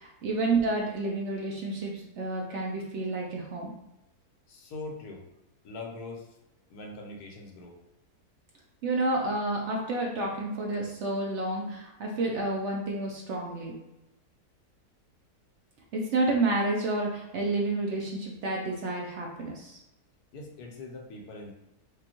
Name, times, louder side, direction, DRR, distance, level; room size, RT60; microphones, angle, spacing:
voice 1, 0.0-3.7 8.8-13.7 15.9-19.8, right 2 dB, 60° right, 0 dB, 0.8 m, -30 dB
voice 2, 4.5-5.2 5.6-6.3 6.7-7.7 20.3-21.5, left 2 dB, 85° left, 1 dB, 1.3 m, -42 dB
5.0 x 2.2 x 2.9 m, 0.93 s
omnidirectional pair, 1.6 m